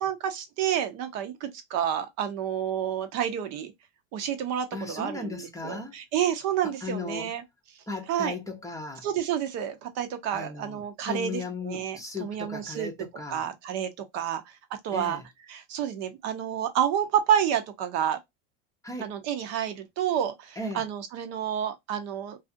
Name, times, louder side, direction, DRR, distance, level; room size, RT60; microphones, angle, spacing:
voice 1, 0.0-3.7 4.1-7.4 8.1-8.3 9.0-12.9 13.3-14.6 14.8-15.2 15.5-18.2 19.0-22.4, right 9 dB, 50° right, 0.7 m, -29 dB
voice 2, 4.7-5.9 6.6-7.3 7.9-9.1 10.3-13.4 14.9-15.2 18.8-19.1 20.6-20.8, left 3 dB, 10° left, 0.6 m, -36 dB
2.5 x 2.4 x 2.5 m
supercardioid pair, 110°, 34 cm